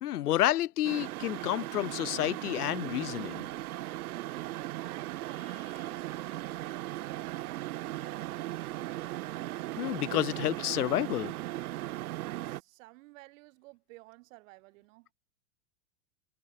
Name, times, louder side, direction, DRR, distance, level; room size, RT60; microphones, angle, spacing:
voice 1, 0.0-3.5 9.8-11.3, left 13 dB, 85° left, 1.0 m, -30 dB
sound 1, 0.8-12.6, right 16 dB, 75° right, 0.8 m, -38 dB
voice 2, 4.5-8.0 12.0-15.1, right 22 dB, 60° right, 3.3 m, -54 dB
hypercardioid pair, 120°, 44 cm